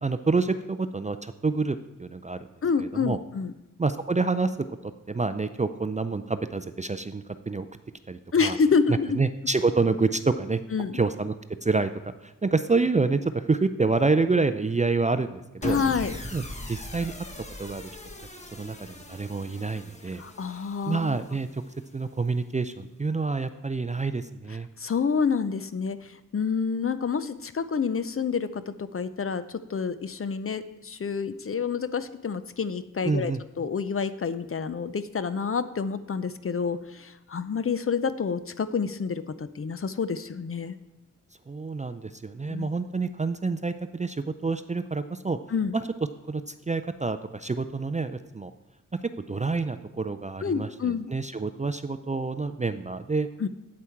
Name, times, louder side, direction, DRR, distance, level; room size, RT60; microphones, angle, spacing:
voice 1, 0.0-2.5 2.8-3.2 3.8-4.6 4.8-7.7 8.1-8.6 8.9-10.6 10.9-11.3 11.6-15.8 16.3-17.1 17.6-17.9 18.5-20.2 20.9-21.6 21.9-24.7 33.0-33.4 41.5-45.4 45.7-45.8 46.3-48.5 49.3-53.3, right 3 dB, 25° right, 10 dB, 0.3 m, -27 dB
voice 2, 2.6-3.5 8.3-9.2 10.7-10.9 15.6-16.2 20.2-21.2 24.8-40.7 42.5-42.7 45.5-45.7 50.4-51.1 53.4-53.5, left 5 dB, 45° left, 13 dB, 0.5 m, -28 dB
sound 1, 15.6-22.0, left 1 dB, 20° left, 1.1 m, -41 dB
8.6 x 8.3 x 4.5 m, 0.99 s
wide cardioid pair, 115°, 33 cm